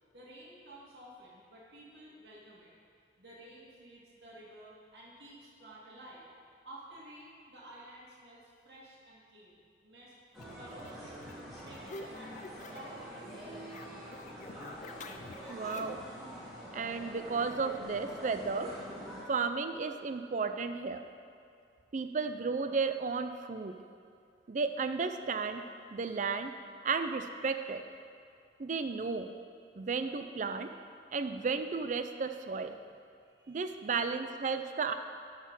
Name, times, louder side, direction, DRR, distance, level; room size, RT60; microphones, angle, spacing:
voice 1, 0.1-2.7 3.2-6.3 6.6-10.1 10.6-11.3 11.6-13.7 33.2-34.0, right 1 dB, 75° right, -6 dB, 2.2 m, -53 dB
sound 1, 10.3-13.0 13.3-16.1, left 3 dB, 45° left, 0.4 m, -49 dB
sound 2, 10.3-19.2, equal, ahead, 2.1 m, -45 dB
voice 2, 15.5-16.0 16.7-18.7 19.3-21.0 21.9-23.7 24.5-25.6 25.9-26.5 26.8-27.8 28.6-29.3 29.8-30.7 31.1-32.8 33.5-34.9, right 4 dB, 45° right, 8 dB, 0.5 m, -33 dB
12.0 x 4.4 x 5.5 m, 2.3 s
head